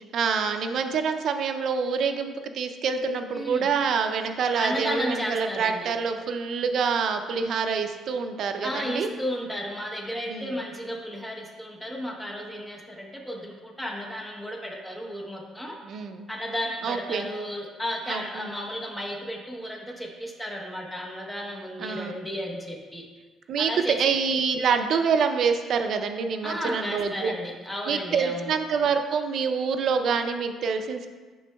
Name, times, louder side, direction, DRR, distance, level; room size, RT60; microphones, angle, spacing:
voice 1, 0.1-9.1 10.3-10.5 15.8-16.3 16.8-17.3 18.1-18.5 21.8-22.1 23.5-23.7 24.0-27.3 27.9-31.1, right 5 dB, 55° right, 6 dB, 0.4 m, -26 dB
voice 2, 3.3-3.7 4.6-5.9 8.6-15.7 16.3-23.0 23.6-24.0 26.4-28.5, equal, 5° left, -1 dB, 0.8 m, -33 dB
9.2 x 6.0 x 2.2 m, 1.4 s
cardioid pair, 150°, 0 cm